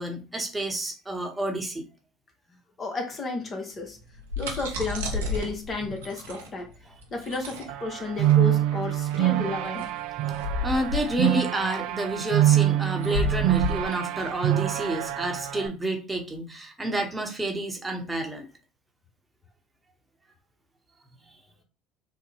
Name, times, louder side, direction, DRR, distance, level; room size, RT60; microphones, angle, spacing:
voice 1, 0.0-1.8 10.6-18.5, right 1 dB, 15° right, 1.0 m, -29 dB
voice 2, 2.8-4.0 4.4-6.7 7.1-9.9, left 3 dB, 35° left, 0.9 m, -32 dB
sound 1, 4.0-15.4, left 2 dB, 80° right, 0.7 m, -33 dB
sound 2, 7.7-15.7, right 14 dB, 65° right, 0.3 m, -25 dB
3.5 x 2.2 x 3.3 m
hypercardioid pair, 65°, 0 cm